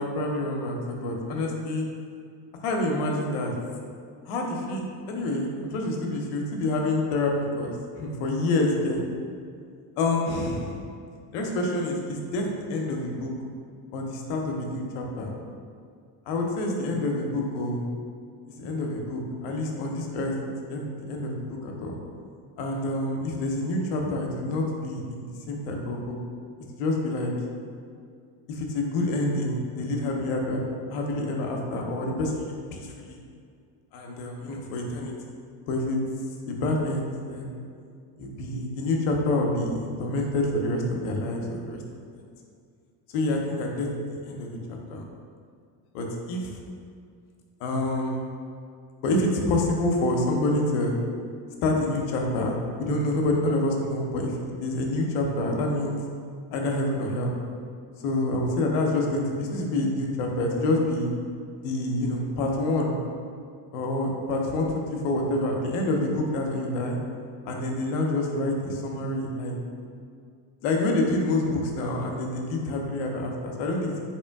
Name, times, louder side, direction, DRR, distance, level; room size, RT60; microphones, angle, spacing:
voice 1, 0.0-1.9 2.6-3.5 4.2-4.8 5.1-9.0 10.0-10.8 11.3-13.3 13.9-15.3 16.3-17.8 18.6-20.3 20.7-22.0 22.6-26.2 26.8-27.3 28.5-30.6 30.9-33.2 33.9-35.1 35.7-36.0 36.4-37.6 38.2-41.8 43.1-45.0 45.9-46.5 47.6-48.3 49.0-50.9 51.6-56.0 56.5-57.3 58.0-61.1 61.6-63.0 63.7-67.0 67.5-69.5 70.6-74.0, left 2 dB, 80° left, 1 dB, 0.8 m, -27 dB
3.6 x 2.9 x 3.4 m, 2.2 s
supercardioid pair, 85°, 49 cm